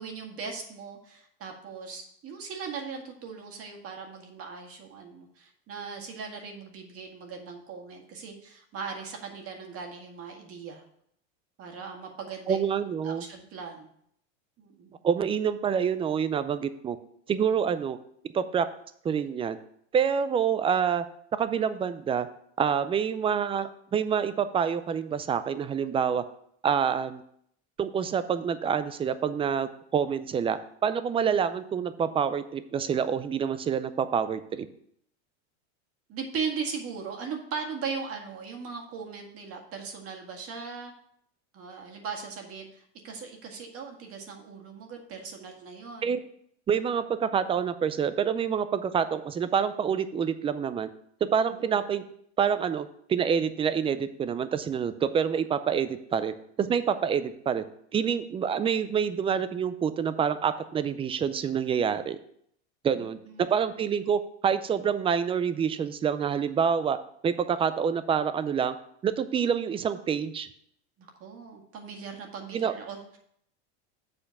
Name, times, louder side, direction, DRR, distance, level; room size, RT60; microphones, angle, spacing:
voice 1, 0.0-10.8 11.6-12.6 13.0-13.9 14.6-15.0 36.1-40.9 41.5-46.2 51.5-51.9 63.0-63.5 71.0-73.2, right 5 dB, 40° right, 2 dB, 1.9 m, -39 dB
voice 2, 12.5-13.2 15.0-17.0 17.3-18.0 18.3-18.7 19.0-19.6 19.9-21.0 21.3-22.3 22.6-26.2 26.6-27.2 27.8-34.7 46.0-46.2 46.7-50.9 51.2-52.0 52.4-57.6 57.9-62.2 62.8-67.0 67.2-68.7 69.0-70.5 72.5-72.7, right 7 dB, 15° right, 12 dB, 0.4 m, -27 dB
7.8 x 4.3 x 6.9 m, 0.69 s
supercardioid pair, 125°, 34 cm